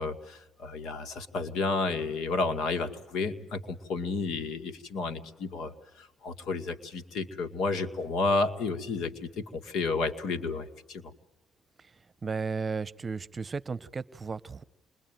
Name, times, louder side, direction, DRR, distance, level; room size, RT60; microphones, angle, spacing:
voice 1, 0.0-11.0, left 3 dB, 80° left, 7 dB, 2.3 m, -31 dB
voice 2, 12.2-14.6, right 4 dB, 35° right, 17 dB, 1.0 m, -34 dB
28.5 x 22.5 x 9.2 m, 1.0 s
cardioid pair, 90°, 0 cm